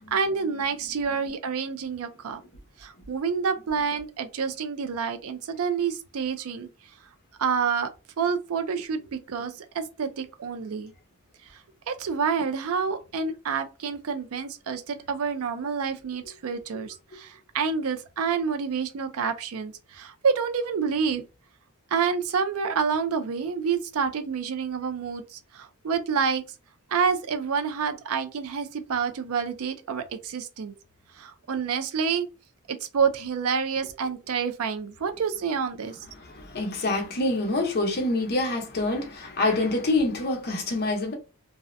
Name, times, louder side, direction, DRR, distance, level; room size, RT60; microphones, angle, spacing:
voice 1, 0.0-2.4 2.8-6.7 7.4-7.9 8.2-10.9 11.9-21.2 21.9-26.4 26.9-30.7 31.2-32.3 32.7-36.0, right 6 dB, 70° right, 0.4 m, -28 dB
voice 2, 36.1-41.1, left 2 dB, 45° left, 0.7 m, -26 dB
2.7 x 2.1 x 2.5 m
head